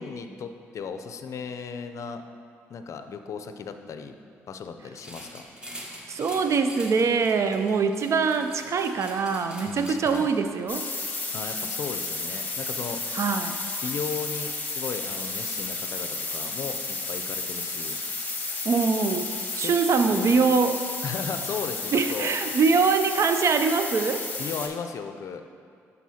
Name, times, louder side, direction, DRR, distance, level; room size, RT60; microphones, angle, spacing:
voice 1, 0.0-2.2 2.7-4.2 4.5-5.5 9.7-10.3 11.3-13.0 13.8-18.0 19.6-19.7 20.1-20.4 21.0-22.6 24.4-25.4, left 6 dB, 60° left, 7 dB, 0.5 m, -36 dB
sound 1, 5.0-10.6, equal, 15° right, 1.2 m, -44 dB
voice 2, 6.1-10.9 13.1-13.6 18.6-19.3 19.6-20.8 21.9-24.3, right 5 dB, 55° right, 8 dB, 0.5 m, -23 dB
sound 2, 10.7-24.7, left 3 dB, 25° left, 0.9 m, -32 dB
11.5 x 4.1 x 2.8 m, 2.3 s
hypercardioid pair, 55°, 6 cm